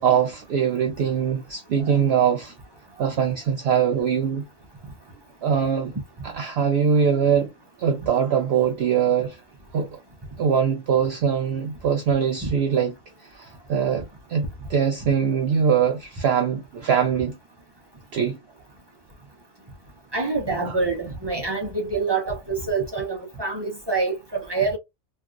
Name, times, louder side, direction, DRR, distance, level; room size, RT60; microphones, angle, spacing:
voice 1, 0.0-2.5 3.0-4.4 5.4-5.9 6.2-7.5 7.8-9.4 9.7-10.0 10.4-12.9 13.2-17.4 18.1-18.4 20.6-20.8, right 7 dB, 60° right, 0.7 m, -22 dB
voice 2, 20.1-24.8, right 4 dB, 40° right, 0.3 m, -26 dB
3.2 x 2.3 x 2.4 m
omnidirectional pair, 1.4 m